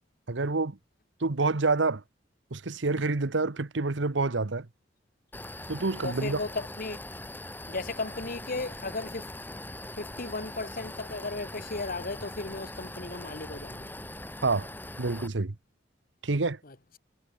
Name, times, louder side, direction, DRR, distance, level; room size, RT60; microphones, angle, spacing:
voice 1, 0.3-0.8 1.2-2.0 2.5-4.7 5.7-6.4 14.4-14.7 15.0-15.5 16.2-16.6, right 3 dB, 80° right, 1.1 m, -27 dB
sound 1, 5.3-15.3, left 1 dB, 10° left, 2.7 m, -41 dB
voice 2, 6.0-7.0 7.7-9.3 10.0-13.9 16.6-16.8, left 3 dB, 50° left, 1.7 m, -35 dB
head